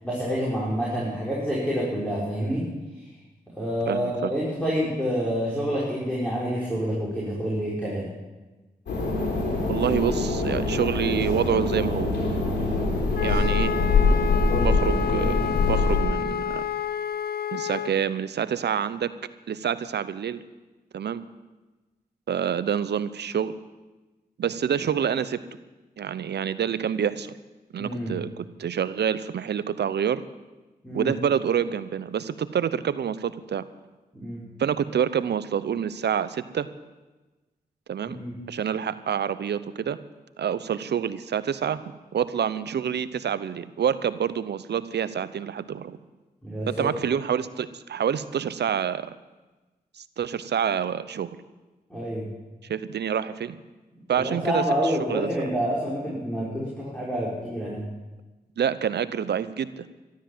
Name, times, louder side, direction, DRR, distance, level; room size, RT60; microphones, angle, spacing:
voice 1, 0.0-2.6 3.6-8.1 13.2-13.4 14.5-14.8 27.8-28.2 30.8-31.2 34.1-34.4 38.0-38.4 46.4-46.9 51.9-52.3 54.1-57.9, equal, 5° left, -7 dB, 6.0 m, -28 dB
voice 2, 3.9-4.3 9.7-12.1 13.2-13.7 14.6-16.7 17.5-19.1 19.5-20.4 20.9-21.2 22.3-23.5 24.4-25.4 26.0-27.3 27.7-30.2 30.9-33.6 34.6-36.7 37.9-38.2 38.5-40.0 40.4-46.0 46.7-49.1 50.0-51.3 52.6-53.5 54.1-55.3 58.6-59.9, right 8 dB, 75° right, 15 dB, 0.8 m, -27 dB
sound 1, 8.9-16.0, left 3 dB, 85° left, 3.9 m, -24 dB
Wind instrument woodwind instrument, 13.1-17.9, left 9 dB, 60° left, 0.6 m, -29 dB
13.0 x 12.5 x 7.4 m, 1.2 s
supercardioid pair, 40°, 18 cm